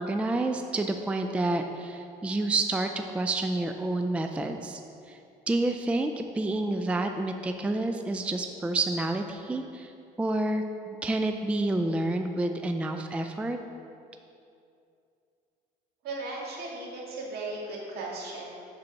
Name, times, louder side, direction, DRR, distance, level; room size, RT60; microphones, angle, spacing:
voice 1, 0.0-4.8 5.1-5.2 5.5-9.9 10.2-13.6, right 2 dB, 5° right, 5 dB, 0.3 m, -29 dB
voice 2, 16.0-18.6, right 2 dB, 70° right, -3 dB, 1.9 m, -36 dB
7.9 x 4.1 x 5.7 m, 2.5 s
cardioid pair, 110°, 17 cm